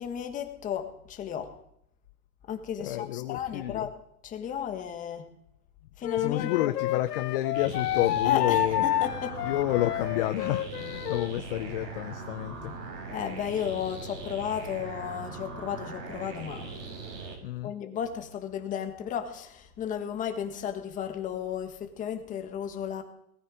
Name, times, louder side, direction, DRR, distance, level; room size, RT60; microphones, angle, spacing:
voice 1, 0.0-1.5 2.5-3.9 4.2-5.2 6.0-6.5 8.2-9.4 13.1-16.8 17.6-23.0, left 9 dB, 15° left, 6 dB, 1.5 m, -34 dB
voice 2, 2.8-3.9 6.2-8.8 9.4-12.7 17.4-17.7, left 15 dB, 35° left, 10 dB, 0.7 m, -30 dB
Wind instrument woodwind instrument, 6.0-11.3, left 12 dB, 80° left, 0.9 m, -29 dB
sound 1, 7.5-17.4, right 4 dB, 85° right, 5.8 m, -40 dB
19.5 x 14.0 x 5.0 m, 0.74 s
supercardioid pair, 160°, 46 cm